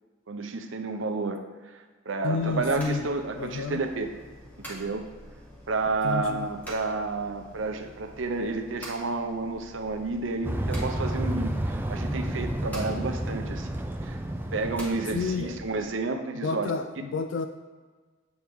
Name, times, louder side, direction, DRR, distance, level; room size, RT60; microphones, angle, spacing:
voice 1, 0.3-4.1 4.7-5.1 5.7-14.2 14.5-16.7, right 3 dB, 90° right, 6 dB, 0.7 m, -31 dB
voice 2, 2.2-3.1 3.4-3.8 6.0-6.5 15.1-15.6 16.4-17.5, left 4 dB, 75° left, 8 dB, 0.3 m, -30 dB
sound 1, 2.3-15.9, equal, 10° left, 1.4 m, -47 dB
sound 2, 10.4-15.8, right 1 dB, 10° right, 0.4 m, -31 dB
8.0 x 4.4 x 3.5 m, 1.4 s
head